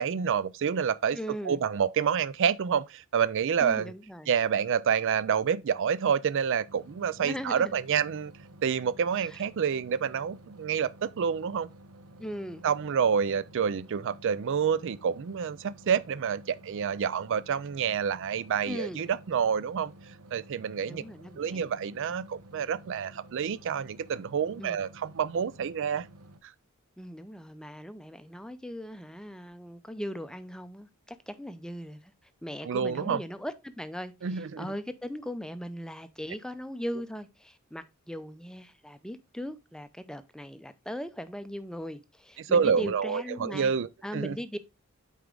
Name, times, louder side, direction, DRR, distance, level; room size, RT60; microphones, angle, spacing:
voice 1, 0.0-1.2 1.4-3.9 4.3-8.3 8.6-11.7 12.6-19.9 20.3-21.0 21.4-26.1 26.4-26.5 32.6-33.2 34.2-34.7 42.4-44.3, right 7 dB, 60° right, 0.4 m, -28 dB
voice 2, 1.1-1.6 3.6-4.3 7.2-7.7 9.2-9.4 12.2-12.6 18.6-19.0 20.9-21.7 24.6-24.8 27.0-32.1 32.4-43.7 44.0-44.6, equal, 5° left, 0.5 m, -39 dB
sound 1, 6.7-26.4, right 1 dB, 85° right, 1.0 m, -52 dB
8.2 x 4.6 x 3.8 m
head